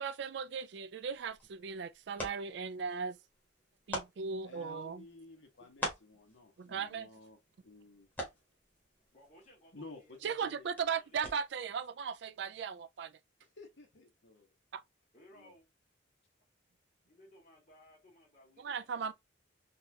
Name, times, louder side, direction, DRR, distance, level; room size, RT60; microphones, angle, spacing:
voice 1, 0.0-3.2 3.9-5.0 6.6-7.1 10.2-13.2 14.7-14.8 18.6-19.1, right 6 dB, 60° right, 0.3 m, -37 dB
sound 1, 1.0-11.7, left 1 dB, 10° left, 1.2 m, -47 dB
voice 2, 4.4-8.1 9.7-10.7 13.6-14.5 15.3-15.5, left 3 dB, 65° left, 1.1 m, -53 dB
voice 3, 9.1-10.5 10.8-11.2 11.6-11.7 15.1-15.7 17.1-19.1, left 1 dB, 40° left, 1.8 m, -61 dB
4.0 x 2.4 x 2.7 m
head